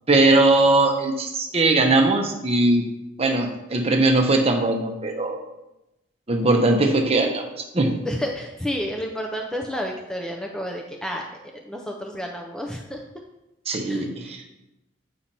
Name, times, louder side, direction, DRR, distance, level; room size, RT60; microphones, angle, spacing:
voice 1, 0.1-2.9 3.2-5.4 6.3-7.4 7.7-7.9 13.7-14.4, right 2 dB, 30° right, 3 dB, 0.7 m, -20 dB
voice 2, 8.0-11.2 11.5-13.0 13.8-14.4, equal, 5° left, 1 dB, 0.4 m, -31 dB
8.5 x 2.9 x 5.2 m, 0.94 s
head